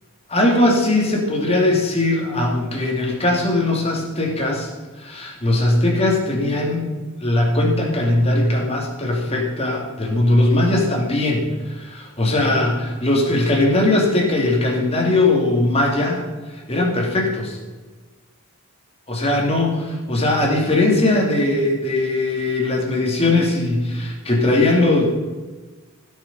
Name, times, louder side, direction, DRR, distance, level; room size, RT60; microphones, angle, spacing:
voice 1, 0.3-4.7 5.0-6.8 7.2-17.6 19.1-25.1, left 2 dB, 25° left, 0 dB, 2.4 m, -19 dB
16.5 x 6.5 x 5.3 m, 1.3 s
head